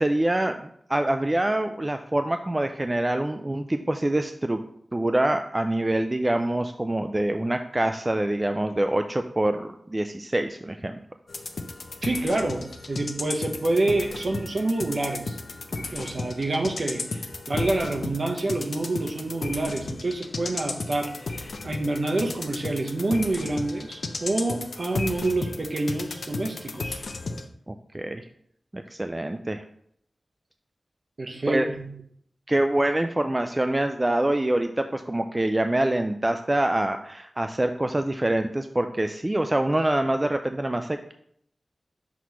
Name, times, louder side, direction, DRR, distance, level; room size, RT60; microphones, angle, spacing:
voice 1, 0.0-4.6 4.9-11.0 27.7-28.2 28.7-29.6 31.5-31.7 32.5-41.1, right 1 dB, 25° right, 7 dB, 0.3 m, -25 dB
sound 1, 11.3-27.5, left 3 dB, 75° left, 0.6 m, -34 dB
voice 2, 12.0-15.4 15.7-27.0 31.2-31.9, right 2 dB, 55° right, 2 dB, 0.9 m, -27 dB
6.0 x 3.1 x 5.7 m, 0.67 s
wide cardioid pair, 75°, 0 cm